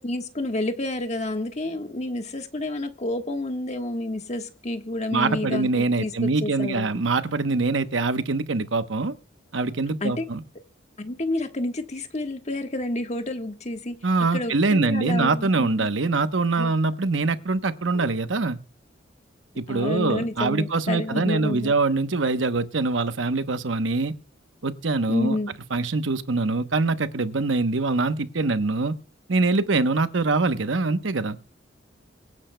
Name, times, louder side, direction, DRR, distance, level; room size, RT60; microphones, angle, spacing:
voice 1, 0.0-7.0 10.0-10.3 11.0-14.0 14.3-15.9 16.6-16.7 17.9-18.1 19.7-21.7 25.1-25.5, left 1 dB, 35° left, 6 dB, 1.4 m, -29 dB
voice 2, 5.1-9.1 9.5-10.4 14.0-18.6 19.6-24.1 24.6-25.4 25.7-29.0 29.3-31.4, right 3 dB, 80° right, 11 dB, 0.9 m, -24 dB
24.5 x 9.7 x 2.2 m, 0.36 s
head